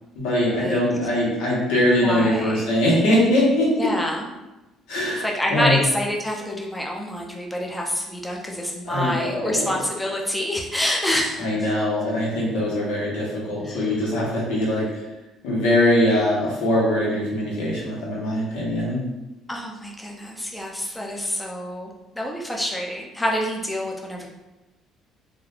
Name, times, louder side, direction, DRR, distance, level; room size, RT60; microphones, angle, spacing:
voice 1, 0.2-3.9 4.9-5.8 8.9-9.7 11.4-14.9 15.4-19.0, left 1 dB, 90° left, -5 dB, 1.0 m, -22 dB
voice 2, 2.0-2.7 3.8-4.3 5.2-11.4 13.6-14.1 19.5-21.9 22.2-24.3, left 1 dB, 5° left, -1 dB, 0.5 m, -27 dB
3.1 x 2.4 x 2.4 m, 1.0 s
cardioid pair, 105°, 0 cm